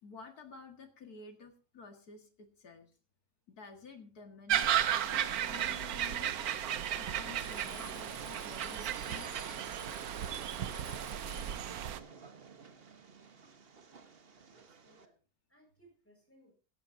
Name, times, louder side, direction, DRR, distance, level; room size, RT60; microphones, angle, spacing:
voice 1, 0.0-2.9 3.5-6.3 7.0-9.6 10.3-10.4, left 4 dB, 90° left, 5 dB, 2.5 m, -52 dB
sound 1, 4.5-12.0, right 10 dB, 80° right, 1.3 m, -34 dB
Train, 5.1-15.1, right 5 dB, 40° right, 1.4 m, -52 dB
Alarm, 7.3-11.8, left 6 dB, 30° left, 1.6 m, -54 dB
voice 2, 13.8-15.1 15.5-16.5, right 1 dB, 10° left, 1 dB, 7.2 m, -66 dB
16.5 x 15.0 x 2.7 m, 0.34 s
omnidirectional pair, 1.6 m